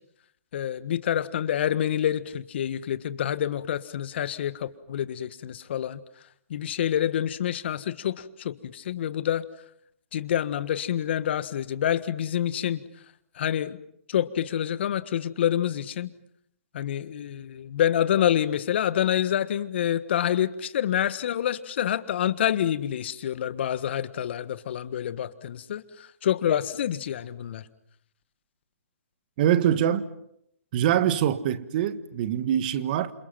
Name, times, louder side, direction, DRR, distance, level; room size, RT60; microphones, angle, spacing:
voice 1, 0.5-6.0 6.5-9.4 10.1-12.8 13.4-13.8 14.1-16.1 16.7-25.8 26.2-27.6, left 10 dB, 50° left, 1.6 m, -27 dB
voice 2, 29.4-30.1 30.7-33.1, right 10 dB, 40° right, 1.6 m, -24 dB
29.0 x 27.0 x 5.9 m
hypercardioid pair, 135°, 8 cm